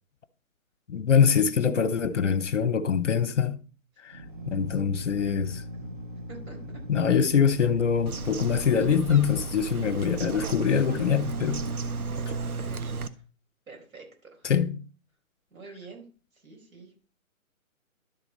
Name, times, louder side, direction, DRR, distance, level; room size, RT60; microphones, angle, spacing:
voice 1, 0.9-3.6 4.0-4.2 4.5-5.6 6.9-11.6 14.4-14.7, left 7 dB, 55° left, 0.9 m, -24 dB
Drill, 4.1-12.7, equal, 35° right, 0.6 m, -40 dB
voice 2, 6.3-6.8 12.1-13.2 13.7-14.0 14.3-14.5 15.5-16.0 16.3-16.9, right 3 dB, 70° right, 4.7 m, -47 dB
Bird vocalization bird call bird song, 8.1-13.1, right 4 dB, 85° right, 1.0 m, -34 dB
12.0 x 4.2 x 5.3 m
hypercardioid pair, 170°, 43 cm